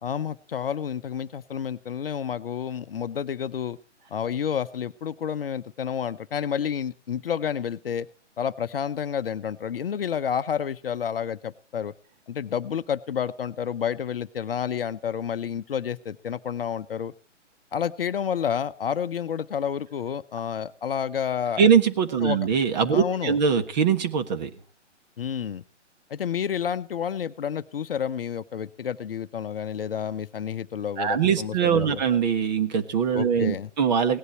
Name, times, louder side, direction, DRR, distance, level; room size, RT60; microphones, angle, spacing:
voice 1, 0.0-3.8 4.1-8.1 8.4-11.9 12.3-17.1 17.7-21.7 22.2-22.4 22.9-23.4 25.2-25.6 26.1-32.0 33.1-33.7, left 8 dB, 50° left, 12 dB, 0.7 m, -30 dB
voice 2, 21.6-24.5 31.0-34.2, right 7 dB, 35° right, 9 dB, 1.5 m, -22 dB
17.5 x 11.0 x 4.3 m, 0.39 s
figure-of-eight pair, 135°, 36 cm